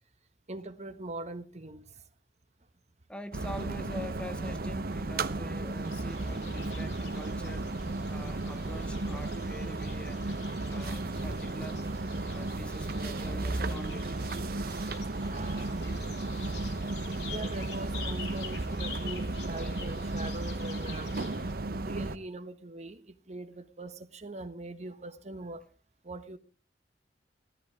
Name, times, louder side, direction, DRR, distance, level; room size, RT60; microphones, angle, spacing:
voice 1, 0.5-2.1 11.1-11.3 11.9-12.3 12.5-12.9 14.7-16.2 16.6-16.8 17.3-21.1 21.8-25.6 26.0-26.4, right 2 dB, 40° right, 1.3 m, -42 dB
voice 2, 3.1-7.7 8.1-10.3 10.7-11.8 12.3-14.3, equal, 5° left, 0.9 m, -44 dB
sound 1, 3.3-22.2, right 2 dB, 60° right, 0.9 m, -34 dB
sound 2, 5.8-21.5, left 7 dB, 70° left, 3.0 m, -48 dB
16.0 x 13.5 x 4.6 m
head